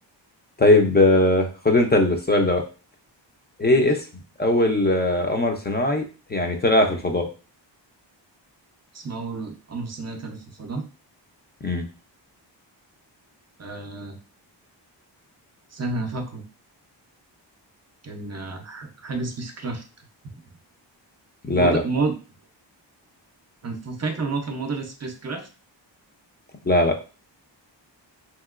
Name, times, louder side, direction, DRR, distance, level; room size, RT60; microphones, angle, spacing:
voice 1, 0.6-2.6 3.6-4.0 4.4-6.0 6.3-7.3 11.6-11.8 21.4-21.8 26.7-27.0, left 1 dB, 25° left, 4 dB, 0.4 m, -19 dB
voice 2, 8.9-10.8 13.6-14.2 15.7-16.4 18.0-19.8 20.3-20.4 21.5-22.2 23.6-25.5, right 3 dB, 35° right, 5 dB, 0.5 m, -30 dB
2.9 x 2.8 x 2.4 m, 0.33 s
wide cardioid pair, 130°, 45 cm